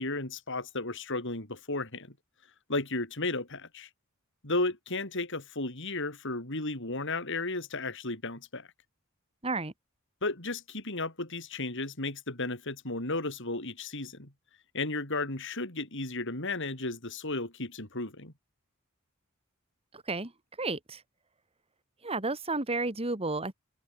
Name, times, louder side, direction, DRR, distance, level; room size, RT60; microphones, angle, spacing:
voice 1, 0.0-2.1 2.7-3.9 4.4-8.7 10.2-14.3 14.7-18.3, left 2 dB, 60° left, 6.2 m, -34 dB
voice 2, 19.9-20.3 20.6-21.0 22.0-23.5, right 3 dB, 25° right, 2.4 m, -32 dB
head